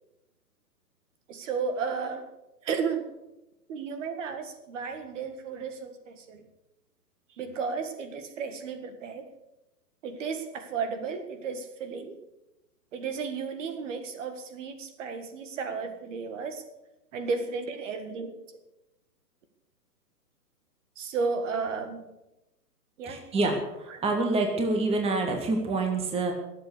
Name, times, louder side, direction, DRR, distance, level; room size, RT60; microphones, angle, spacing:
voice 1, 1.3-2.3 2.6-3.1 3.7-6.4 7.4-9.3 10.0-12.2 12.9-16.6 17.1-18.3 21.0-22.1 23.0-23.2 23.9-24.0, right 5 dB, 50° right, 8 dB, 1.8 m, -33 dB
voice 2, 23.0-26.3, right 2 dB, 10° right, 3 dB, 1.7 m, -27 dB
20.5 x 7.9 x 6.6 m, 0.94 s
hypercardioid pair, 135°, 48 cm